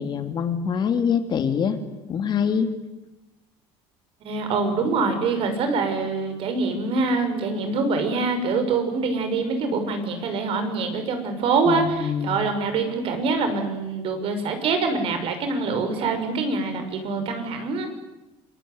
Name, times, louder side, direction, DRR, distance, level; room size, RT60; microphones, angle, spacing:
voice 1, 0.0-1.8 2.1-2.7 11.7-12.4, left 7 dB, 40° left, 7 dB, 2.9 m, -24 dB
voice 2, 4.2-17.9, right 4 dB, 55° right, 7 dB, 6.3 m, -25 dB
28.0 x 21.0 x 9.7 m, 1.0 s
cardioid pair, 125°, 11 cm